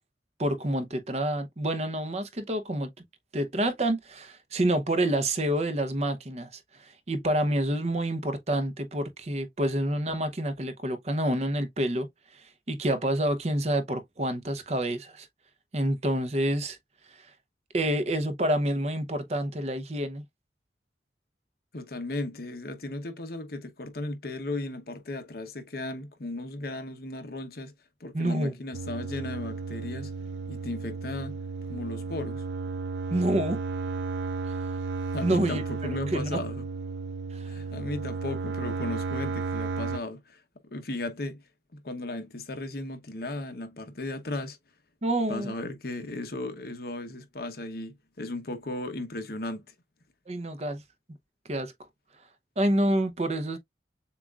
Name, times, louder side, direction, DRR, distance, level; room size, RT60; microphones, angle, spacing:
voice 1, 0.4-2.9 3.3-6.5 6.8-12.1 12.7-15.3 15.7-16.8 17.7-20.2 28.1-28.5 33.1-33.6 35.2-35.6 35.9-36.3 37.3-37.5 45.0-45.5 50.3-50.8 51.5-51.7 52.6-53.6, right 1 dB, 40° right, 0.7 m, -28 dB
voice 2, 21.7-27.7 28.0-30.1 30.5-31.4 31.7-32.5 35.1-36.6 37.5-40.4 40.7-41.4 41.7-44.6 45.3-49.7, left 2 dB, 60° left, 0.9 m, -36 dB
sound 1, 28.7-40.0, right 4 dB, 85° right, 0.4 m, -33 dB
7.0 x 2.5 x 2.4 m
head